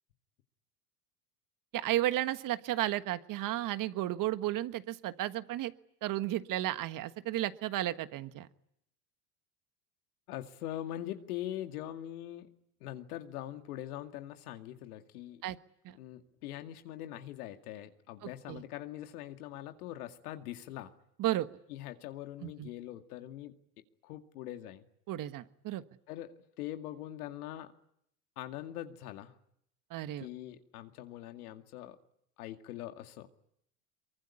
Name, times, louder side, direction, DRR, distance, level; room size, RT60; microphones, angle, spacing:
voice 1, 1.7-5.7 6.0-8.5 15.4-15.6 15.8-15.9 18.5-18.6 21.2-21.5 22.4-22.7 25.1-25.8 29.9-30.3, right 14 dB, 45° right, 12 dB, 1.5 m, -33 dB
voice 2, 10.3-12.5 12.8-15.4 15.9-20.9 21.7-23.6 24.0-24.9 26.1-27.7 28.4-29.3 30.2-32.0 32.4-33.3, left 13 dB, 75° left, 6 dB, 2.2 m, -42 dB
23.5 x 23.5 x 10.0 m, 0.75 s
hypercardioid pair, 95°, 45 cm